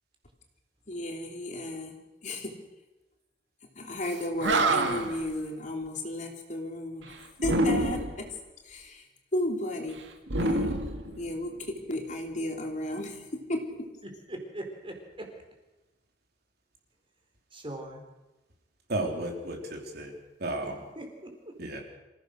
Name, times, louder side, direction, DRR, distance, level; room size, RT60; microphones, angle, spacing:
voice 1, 0.9-1.9 2.2-2.6 3.8-7.1 7.4-8.3 8.6-9.0 9.3-10.0 10.4-10.8 11.2-13.9, left 1 dB, 45° left, 2 dB, 3.2 m, -34 dB
Animal, 4.1-4.2 4.4-5.2 7.4-8.3 10.3-11.6, right 2 dB, 85° right, 2.2 m, -27 dB
voice 2, 14.0-15.3 17.5-18.0 20.6-21.6, right 1 dB, 30° right, 3 dB, 4.2 m, -41 dB
voice 3, 18.9-20.1 20.4-20.7 21.6-21.8, right 1 dB, 60° right, 2 dB, 3.9 m, -33 dB
26.0 x 16.0 x 6.6 m, 1.0 s
head